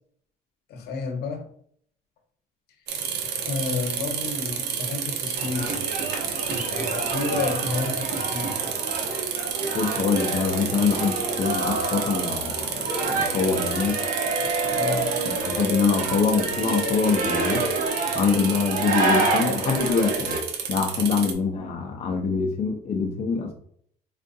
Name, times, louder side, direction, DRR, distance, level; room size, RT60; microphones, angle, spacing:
voice 1, 0.7-1.5 3.4-5.8 6.5-8.7 14.7-15.1, left 4 dB, 70° left, 0.9 m, -30 dB
sound 1, 2.9-21.3, right 7 dB, 85° right, 0.6 m, -31 dB
sound 2, 5.3-20.4, right 3 dB, 50° right, 1.0 m, -28 dB
voice 2, 9.7-14.0 14.7-14.8 15.3-17.7 18.1-20.4 20.7-23.5, left 5 dB, 40° left, 0.6 m, -24 dB
4.5 x 2.4 x 2.6 m
cardioid pair, 110°, 17 cm